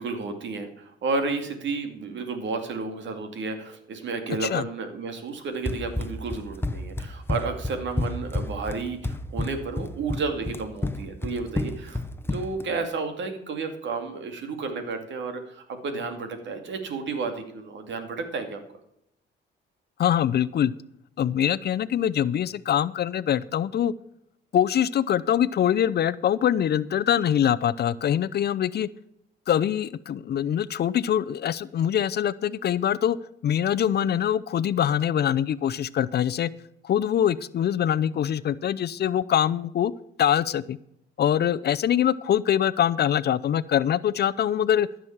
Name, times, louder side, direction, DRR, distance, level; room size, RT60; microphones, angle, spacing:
voice 1, 0.0-12.0 12.3-18.6, right 4 dB, 70° right, 6 dB, 2.4 m, -32 dB
Run, 5.7-12.7, left 2 dB, 10° left, 1.0 m, -30 dB
voice 2, 20.0-20.7 21.2-23.9 24.5-28.9 29.5-33.2 33.4-36.5 36.8-39.9 40.2-40.8 41.2-44.9, left 10 dB, 55° left, 16 dB, 0.6 m, -24 dB
13.5 x 6.3 x 7.2 m, 0.76 s
cardioid pair, 90°, 20 cm